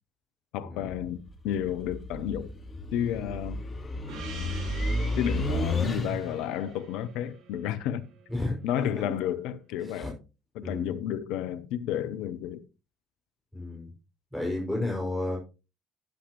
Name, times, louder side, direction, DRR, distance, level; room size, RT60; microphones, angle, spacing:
voice 1, 0.5-2.5 2.9-3.6 5.2-8.1 8.6-10.1 10.5-12.6 14.7-14.9, left 10 dB, 65° left, 0.8 m, -31 dB
sound 1, 0.8-6.5, left 1 dB, 35° left, 3.1 m, -32 dB
Gong, 4.1-8.8, right 4 dB, 55° right, 4.8 m, -47 dB
voice 2, 10.6-10.9 13.5-13.9 14.3-15.4, left 2 dB, 5° left, 6.2 m, -32 dB
13.0 x 10.0 x 3.1 m
figure-of-eight pair, 55°, 0 cm